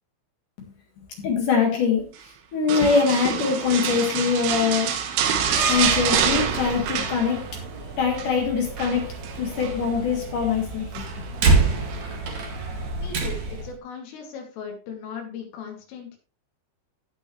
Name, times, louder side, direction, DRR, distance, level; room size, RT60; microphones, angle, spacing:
voice 1, 1.2-5.0 5.7-7.4 8.0-9.1 9.3-11.0, left 6 dB, 55° left, 1 dB, 2.8 m, -23 dB
sound 1, 2.7-7.7 7.9-8.3 8.8-9.8 10.9-11.4 11.9-12.0, right 8 dB, 80° right, 3.8 m, -26 dB
Slam, 5.3-13.7, right 3 dB, 50° right, 2.6 m, -28 dB
voice 2, 13.0-16.2, left 6 dB, 90° left, 2 dB, 5.0 m, -38 dB
17.5 x 6.2 x 3.2 m, 0.35 s
omnidirectional pair, 5.6 m